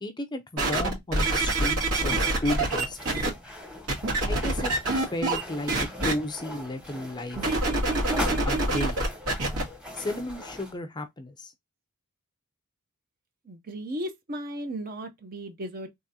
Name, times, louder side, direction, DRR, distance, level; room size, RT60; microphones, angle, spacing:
voice 1, 0.0-3.0 4.3-4.7 5.1-7.5 8.5-9.0 10.0-11.5, left 1 dB, 20° left, 0.5 m, -33 dB
sound 1, 0.6-3.3 3.9-5.4 5.7-6.1 7.4-9.6 10.3-10.4, right 2 dB, 80° right, 2.1 m, -25 dB
sound 2, 1.9-10.8, left 1 dB, 5° right, 0.9 m, -40 dB
voice 2, 13.5-15.9, equal, 40° right, 0.6 m, -35 dB
3.6 x 3.4 x 2.7 m
head